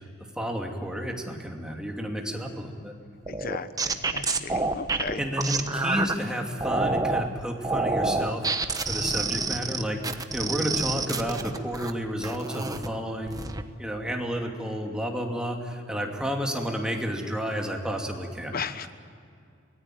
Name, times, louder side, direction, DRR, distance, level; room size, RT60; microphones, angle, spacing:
voice 1, 0.4-2.9 5.2-13.4 13.8-18.5, equal, 5° right, 1 dB, 2.7 m, -31 dB
voice 2, 3.3-5.2 18.5-18.9, left 5 dB, 50° left, 11 dB, 1.2 m, -35 dB
sound 1, 3.3-6.1 6.6-7.3 7.6-11.9 12.2-12.9 13.3-13.6, right 3 dB, 20° right, 1.1 m, -28 dB
24.5 x 19.0 x 9.2 m, 2.4 s
head